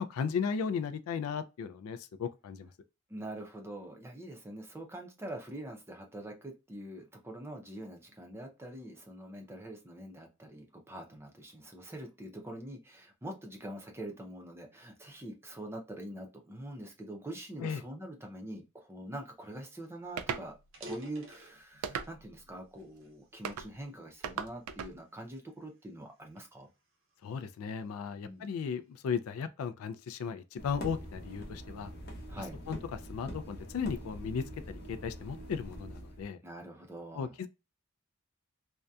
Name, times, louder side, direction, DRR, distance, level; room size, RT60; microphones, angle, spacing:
voice 1, 0.0-2.7 17.6-17.8 27.2-31.9 32.4-36.4 37.1-37.5, left 6 dB, 80° left, 0.3 m, -36 dB
voice 2, 3.1-20.5 20.8-26.7 28.2-28.5 32.3-32.6 36.4-37.3, right 1 dB, 10° right, 0.5 m, -44 dB
sound 1, 20.0-20.1 20.6-22.2 22.7-24.0 24.6-24.9 25.5-27.5, equal, 65° right, 0.7 m, -51 dB
sound 2, 20.2-20.5 21.8-22.4 23.4-23.7 24.2-24.9, right 7 dB, 90° right, 0.3 m, -37 dB
sound 3, 30.6-36.2, equal, 50° left, 0.7 m, -44 dB
2.6 x 2.1 x 2.2 m
head